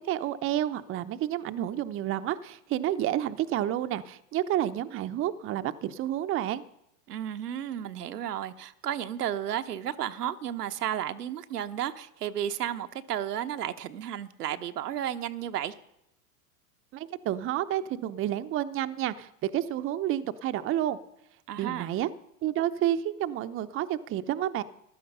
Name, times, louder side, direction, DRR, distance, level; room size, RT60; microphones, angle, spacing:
voice 1, 0.1-6.6 16.9-21.0 21.6-22.1 22.4-24.6, right 12 dB, 30° right, 0.7 m, -30 dB
voice 2, 7.1-15.7 21.5-21.9, right 10 dB, 85° right, 1.1 m, -33 dB
15.0 x 12.0 x 5.5 m
hypercardioid pair, 110°, 45 cm